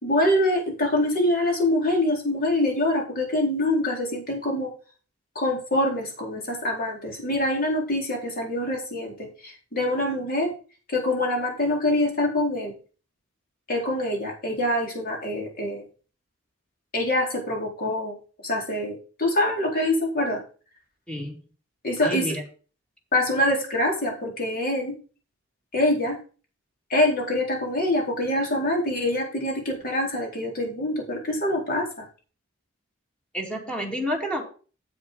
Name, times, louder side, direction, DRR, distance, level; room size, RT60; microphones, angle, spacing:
voice 1, 0.0-4.7 5.3-9.1 9.4-10.5 10.9-12.7 13.7-15.8 16.9-18.2 18.4-20.4 21.8-22.3 23.1-24.9 25.7-26.2 26.9-32.0, left 1 dB, 45° left, 0 dB, 4.1 m, -25 dB
voice 2, 21.1-21.4 22.0-22.4 33.3-34.5, equal, 5° left, 1 dB, 2.2 m, -29 dB
8.4 x 7.6 x 5.2 m, 0.37 s
head